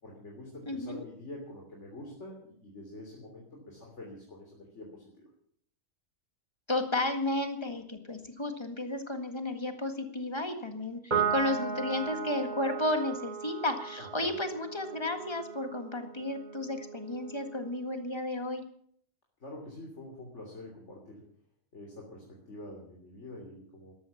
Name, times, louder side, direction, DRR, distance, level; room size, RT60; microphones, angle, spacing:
voice 1, 0.0-5.3 14.0-14.4 19.4-21.2 21.7-23.9, left 1 dB, 75° left, 0 dB, 3.6 m, -46 dB
voice 2, 0.7-1.0 6.7-18.6, left 2 dB, 20° left, 7 dB, 1.9 m, -33 dB
Piano, 11.1-17.8, right 6 dB, 40° right, 2.8 m, -36 dB
13.0 x 12.5 x 7.1 m, 0.63 s
omnidirectional pair, 1.2 m